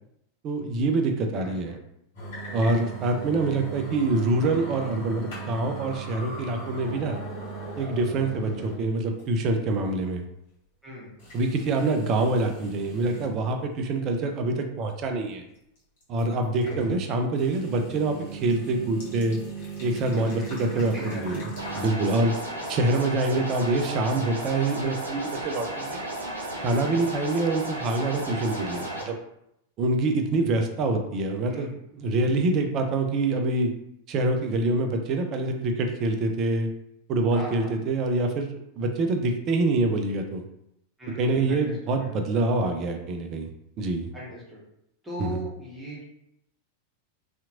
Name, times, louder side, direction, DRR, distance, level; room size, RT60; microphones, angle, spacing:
voice 1, 0.4-1.8 2.5-7.2 7.8-10.2 11.3-15.5 16.1-19.4 19.8-21.5 21.8-22.3 22.7-26.0 26.6-29.1 29.8-33.7 34.1-36.7 37.1-40.4 41.2-43.5 43.8-44.1 45.2-45.4, right 2 dB, 35° right, 5 dB, 0.4 m, -25 dB
voice 2, 1.3-1.7 10.8-11.1 16.4-16.8 20.0-21.7 31.4-31.8 37.3-37.7 41.0-42.2 44.1-44.6 45.0-46.0, equal, 10° right, -7 dB, 1.1 m, -39 dB
sound 1, 2.1-8.8 9.2-9.3 10.0-10.1 11.2-13.3 13.8-13.9 16.0-17.1 17.4-21.9, right 4 dB, 55° left, 1.1 m, -38 dB
sound 2, 21.6-29.0, right 1 dB, 75° right, 0.6 m, -34 dB
2.8 x 2.5 x 2.5 m, 0.79 s
figure-of-eight pair, 90°, 0 cm